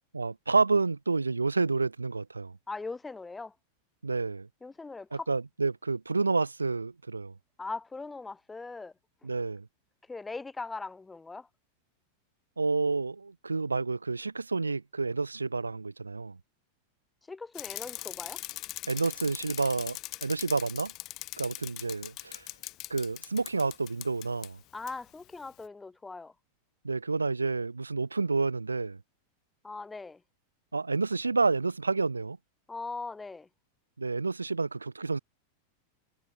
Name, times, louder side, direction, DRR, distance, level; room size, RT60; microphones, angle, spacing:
voice 1, 0.1-2.5 4.0-4.5 5.1-7.3 9.2-9.7 12.6-16.4 18.9-20.9 21.4-22.5 22.9-24.6 26.8-29.0 30.7-32.4 34.0-35.2, right 3 dB, 80° right, 1.2 m, -29 dB
voice 2, 2.7-3.5 4.6-5.3 7.6-8.9 10.1-11.5 17.3-18.4 24.7-26.3 29.6-30.2 32.7-33.5, left 3 dB, 10° left, 0.8 m, -40 dB
Bicycle, 17.5-24.5 24.9-25.0, left 18 dB, 40° left, 0.6 m, -41 dB
figure-of-eight pair, 90°, 0 cm